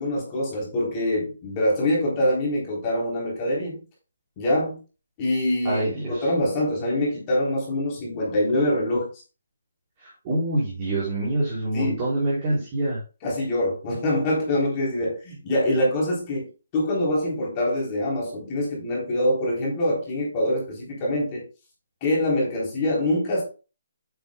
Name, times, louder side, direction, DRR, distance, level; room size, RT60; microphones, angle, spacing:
voice 1, 0.0-3.8 4.4-4.8 5.2-5.8 6.1-9.2 11.7-12.0 12.5-12.6 13.2-16.5 16.7-21.4 22.0-23.4, left 1 dB, 20° left, -3 dB, 3.6 m, -24 dB
voice 2, 5.6-6.3 10.0-13.0, right 1 dB, 25° right, -8 dB, 4.3 m, -26 dB
8.8 x 8.1 x 2.3 m, 0.32 s
hypercardioid pair, 170°, 0 cm